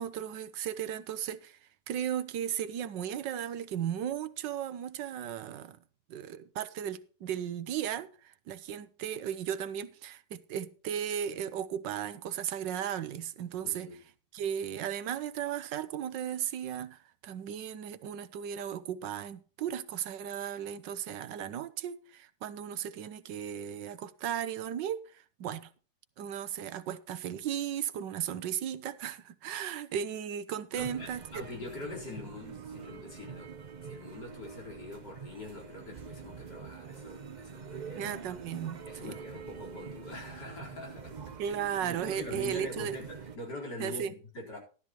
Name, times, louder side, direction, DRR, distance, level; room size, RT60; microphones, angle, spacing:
voice 1, 0.0-1.6 1.9-5.8 6.1-13.9 14.3-25.0 25.4-25.7 26.2-31.4 37.9-39.2 41.4-43.0 43.8-44.1, right 9 dB, 85° right, 1.5 m, -36 dB
voice 2, 13.6-14.0 30.8-33.5 33.8-38.3 38.8-44.6, left 2 dB, 70° left, 4.9 m, -44 dB
sound 1, 30.8-43.4, right 6 dB, 45° right, 0.6 m, -45 dB
13.5 x 12.5 x 3.0 m
omnidirectional pair, 1.9 m